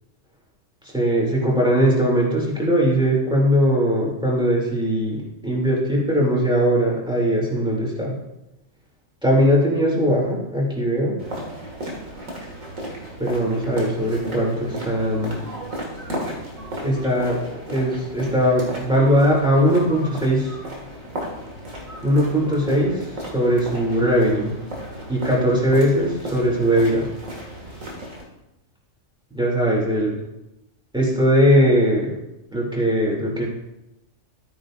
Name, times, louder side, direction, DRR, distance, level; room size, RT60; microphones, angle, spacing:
voice 1, 0.8-8.2 9.2-11.2 13.2-15.4 16.8-20.6 22.0-24.5 25.1-27.1 29.3-30.2 30.9-32.2 32.5-33.5, equal, 5° right, -4 dB, 2.9 m, -20 dB
sound 1, 11.2-28.2, equal, 80° right, 2.6 m, -34 dB
13.5 x 9.1 x 2.6 m, 0.93 s
omnidirectional pair, 1.4 m